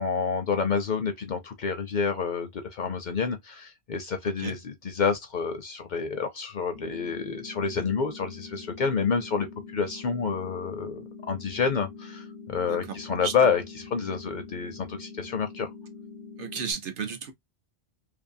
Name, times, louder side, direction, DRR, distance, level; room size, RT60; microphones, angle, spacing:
voice 1, 0.0-9.5 9.7-15.7, left 5 dB, 55° left, 0.6 m, -28 dB
sound 1, 6.7-16.7, left 4 dB, 80° left, 1.0 m, -44 dB
voice 2, 16.4-17.3, right 6 dB, 65° right, 0.7 m, -33 dB
2.6 x 2.5 x 2.5 m
omnidirectional pair, 1.1 m